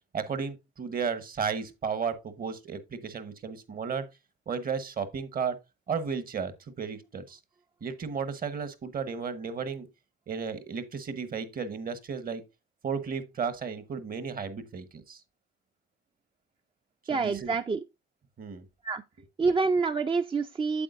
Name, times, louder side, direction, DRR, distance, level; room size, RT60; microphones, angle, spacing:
voice 1, 0.1-4.0 4.5-5.6 5.9-6.5 6.8-7.4 7.8-9.9 10.3-12.4 12.8-15.2 17.1-17.5 18.4-18.6, right 6 dB, 45° right, 1.1 m, -34 dB
voice 2, 17.1-17.8 18.8-19.0 19.4-20.8, right 4 dB, 25° right, 0.5 m, -27 dB
8.4 x 7.8 x 2.5 m
cardioid pair, 90°, 20 cm